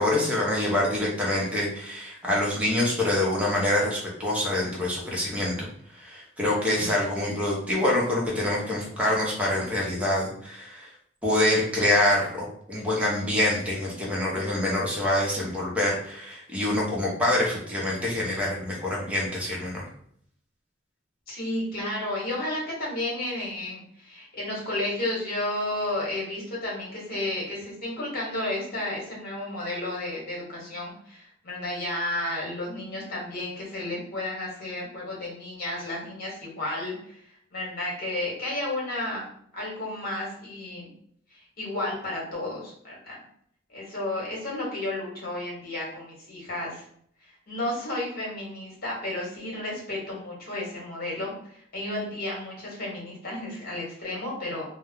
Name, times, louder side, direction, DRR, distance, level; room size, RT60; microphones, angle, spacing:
voice 1, 0.0-5.7 5.9-10.9 11.2-19.8, left 1 dB, 5° right, -4 dB, 0.8 m, -26 dB
voice 2, 21.3-37.2 37.5-39.3 39.5-40.9 41.3-43.2 43.7-46.8 47.3-54.6, left 1 dB, 50° left, -4 dB, 1.2 m, -32 dB
2.3 x 2.1 x 3.6 m, 0.65 s
head